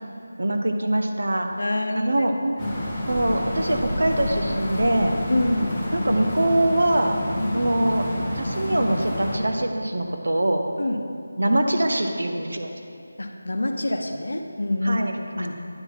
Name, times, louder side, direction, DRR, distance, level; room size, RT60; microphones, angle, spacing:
voice 1, 0.4-1.5 1.9-2.4 3.1-5.1 5.9-7.1 7.5-8.1 8.3-10.6 11.4-12.7 14.8-15.5, right 1 dB, 65° right, 4 dB, 0.7 m, -23 dB
voice 2, 1.6-2.1 2.6-2.9 5.3-5.7 7.4-7.6 10.8-11.0 13.2-15.0 15.3-15.5, left 1 dB, 75° left, 4 dB, 0.7 m, -26 dB
sound 1, 2.6-9.4, left 1 dB, 5° left, 0.8 m, -29 dB
9.7 x 3.9 x 4.5 m, 2.6 s
figure-of-eight pair, 180°, 0 cm